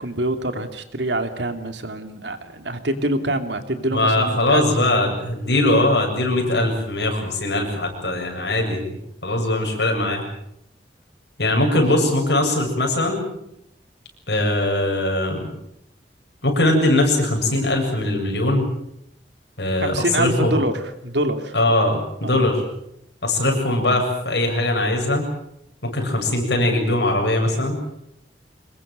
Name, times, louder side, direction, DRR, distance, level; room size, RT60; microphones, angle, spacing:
voice 1, 0.0-4.7 11.6-11.8 19.8-20.7 21.0-21.5 22.2-22.4, right 1 dB, 80° right, 8 dB, 2.7 m, -25 dB
voice 2, 3.9-9.0 9.2-10.2 11.4-13.3 14.3-15.5 16.4-18.7 19.6-20.6 21.5-22.6 23.2-25.2 25.8-27.8, left 1 dB, 70° left, 3 dB, 7.7 m, -21 dB
25.5 x 22.0 x 7.7 m, 0.77 s
head